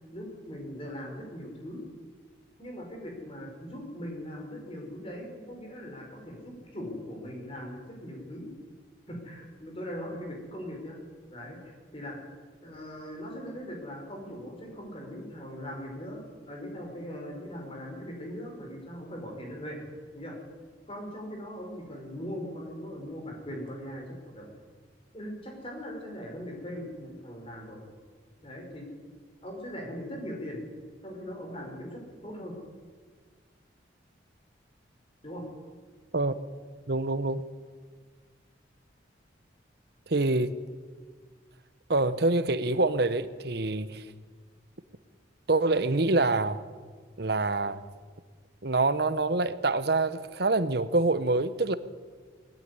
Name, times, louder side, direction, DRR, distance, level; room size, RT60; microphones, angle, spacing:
voice 1, 0.1-1.8 2.6-8.5 9.1-11.0 11.3-12.2 12.6-19.8 20.1-20.4 20.9-24.5 25.1-27.8 28.4-28.9 29.4-30.6 31.0-32.6 35.2-35.4, equal, 30° left, 5.3 m, -40 dB
voice 2, 36.9-37.4 40.1-40.5 41.9-44.0 45.5-46.6 47.2-47.8 48.6-51.7, right 2 dB, 55° right, 1.0 m, -26 dB
19.5 x 14.0 x 9.8 m
head